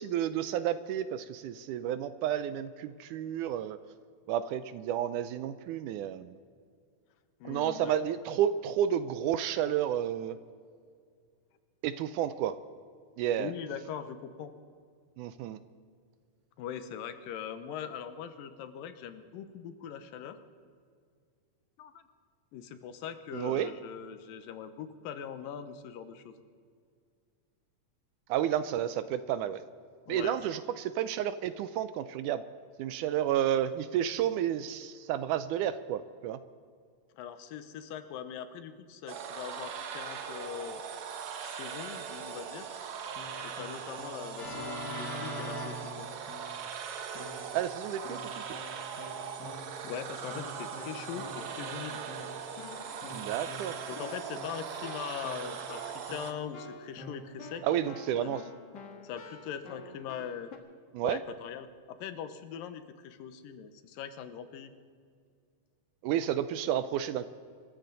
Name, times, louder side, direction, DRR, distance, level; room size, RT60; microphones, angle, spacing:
voice 1, 0.0-3.8 4.3-6.4 7.5-10.4 11.8-12.6 13.2-13.5 15.2-15.6 23.3-23.7 28.3-29.6 30.1-32.4 32.8-36.4 47.5-48.6 53.1-53.8 57.6-58.4 60.9-61.2 66.0-67.3, right 10 dB, 80° right, 13 dB, 1.9 m, -31 dB
voice 2, 7.4-8.0 13.4-14.5 16.6-20.4 21.8-22.0 22.5-26.3 30.1-30.4 37.1-40.8 41.4-42.7 43.4-46.1 49.9-52.0 53.9-57.6 58.2-58.3 59.0-60.5 61.0-64.7, left 8 dB, 90° left, 10 dB, 2.7 m, -41 dB
sound 1, 39.1-56.3, right 7 dB, 60° right, 2.2 m, -40 dB
Keyboard (musical), 43.0-46.7 47.1-47.6 48.0-60.6, left 2 dB, 55° left, 1.2 m, -46 dB
sound 2, 51.1-58.1, right 2 dB, 35° right, 1.5 m, -55 dB
26.0 x 14.0 x 3.9 m, 2.1 s
omnidirectional pair, 3.9 m